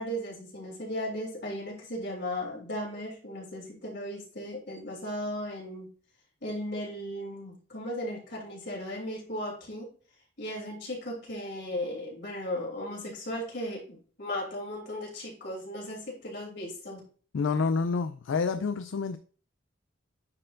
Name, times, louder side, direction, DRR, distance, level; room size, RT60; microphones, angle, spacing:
voice 1, 0.0-5.9 6.4-9.9 10.4-17.0, left 1 dB, 60° left, 2.9 m, -36 dB
voice 2, 17.3-19.2, left 4 dB, 75° left, 0.4 m, -28 dB
9.8 x 4.4 x 2.5 m
head